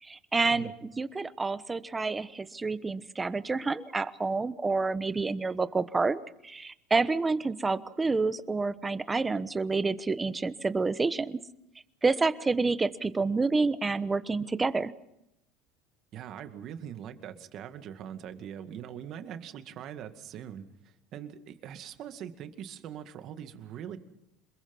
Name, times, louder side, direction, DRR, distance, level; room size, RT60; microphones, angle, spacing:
voice 1, 0.0-11.4 12.0-14.9, right 3 dB, 15° right, 14 dB, 1.0 m, -28 dB
voice 2, 16.1-24.0, right 9 dB, 50° right, 8 dB, 2.1 m, -42 dB
27.0 x 21.5 x 5.6 m, 0.83 s
supercardioid pair, 125°, 0 cm